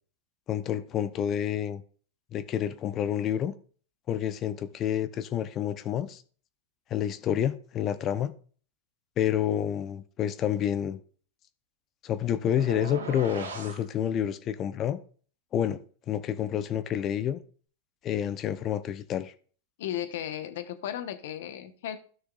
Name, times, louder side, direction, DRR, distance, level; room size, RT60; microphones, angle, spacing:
voice 1, 0.5-1.8 2.3-3.5 4.1-6.2 6.9-8.3 9.2-11.0 12.0-15.0 15.5-15.8 16.1-17.4 18.0-19.3, left 10 dB, 35° left, 0.7 m, -29 dB
sound 1, 12.6-13.8, right 4 dB, 85° right, 2.2 m, -38 dB
voice 2, 19.8-22.0, left 11 dB, 70° left, 1.0 m, -35 dB
12.5 x 6.3 x 2.4 m
hypercardioid pair, 100°, 0 cm